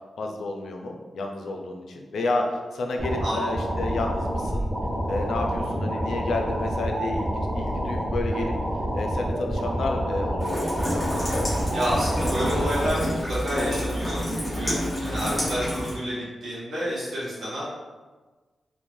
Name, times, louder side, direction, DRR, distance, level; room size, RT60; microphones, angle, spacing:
voice 1, 0.2-2.4 2.7-4.7 5.0-8.5 8.9-11.1 15.0-15.3, left 2 dB, 85° left, 2 dB, 0.4 m, -31 dB
sound 1, 3.0-13.0, equal, 25° right, 0.6 m, -28 dB
voice 2, 3.2-3.6 11.7-17.6, equal, 80° right, -8 dB, 1.1 m, -29 dB
Rain, 10.4-15.9, equal, 15° left, 0.8 m, -29 dB
3.1 x 2.1 x 2.5 m, 1.3 s
wide cardioid pair, 155°, 0 cm